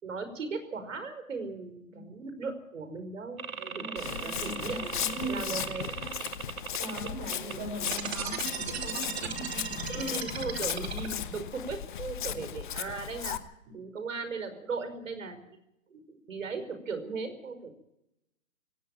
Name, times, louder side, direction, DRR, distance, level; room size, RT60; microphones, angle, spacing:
voice 1, 0.0-3.4 3.7-5.0 5.3-6.1 9.9-13.4 13.7-15.4 15.9-17.7, right 4 dB, 65° right, 9 dB, 5.4 m, -37 dB
sound 1, 3.4-7.5 7.9-8.2, right 5 dB, 85° right, 2.0 m, -38 dB
voice 2, 3.6-5.6 6.8-10.1 12.3-12.5 13.7-13.8, right 2 dB, 30° right, 5 dB, 5.3 m, -40 dB
Walk footsteps, 4.0-13.4, left 10 dB, 35° left, 1.2 m, -37 dB
sound 2, 7.9-11.4, right 7 dB, 50° right, 3.0 m, -36 dB
17.5 x 16.5 x 9.0 m, 0.82 s
hypercardioid pair, 155°, 42 cm